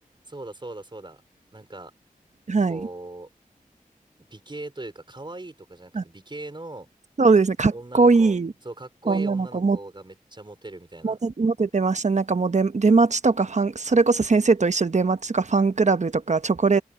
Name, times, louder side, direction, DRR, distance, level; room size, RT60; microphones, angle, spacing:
voice 1, 0.3-1.2 1.5-1.9 2.6-3.3 4.3-6.9 7.7-11.2, right 2 dB, 30° right, 4.9 m, -39 dB
voice 2, 2.5-2.8 5.9-6.0 7.2-8.5 9.1-9.8 11.0-16.8, right 4 dB, 50° right, 1.0 m, -20 dB
wide cardioid pair, 55°, 15 cm